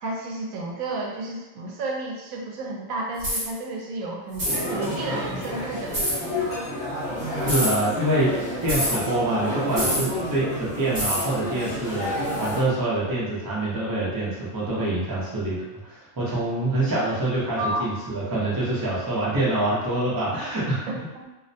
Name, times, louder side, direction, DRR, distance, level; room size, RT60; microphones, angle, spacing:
voice 1, 0.0-6.1 17.6-17.9 20.9-21.2, right 2 dB, 80° right, -1 dB, 1.0 m, -31 dB
sound 1, 3.2-3.5 4.3-4.6 5.9-6.2 7.4-7.8 8.7-9.0 9.7-10.1 10.9-11.3, equal, 50° right, 1.3 m, -26 dB
sound 2, 4.4-12.6, left 1 dB, 45° left, 0.7 m, -30 dB
voice 2, 7.3-8.4 8.6-20.8, right 1 dB, 30° right, -7 dB, 0.4 m, -26 dB
2.5 x 2.1 x 2.6 m, 1.1 s
omnidirectional pair, 1.5 m